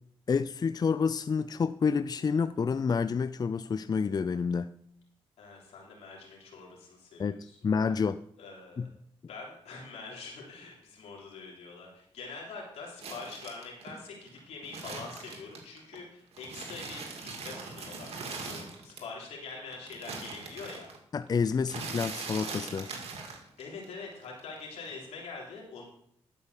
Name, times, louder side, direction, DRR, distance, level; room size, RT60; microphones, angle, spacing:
voice 1, 0.3-4.7 7.2-8.2 8.8-8.9 21.1-22.9, left 5 dB, 40° left, 0.4 m, -29 dB
voice 2, 5.4-7.6 8.4-8.9 9.3-20.9 23.6-25.8, left 4 dB, 85° left, 3.3 m, -44 dB
sound 1, 13.0-16.0 16.3-19.2 19.5-23.9 24.1-25.0, right 4 dB, 75° right, 2.1 m, -41 dB
12.0 x 5.3 x 6.8 m
supercardioid pair, 55°, 11 cm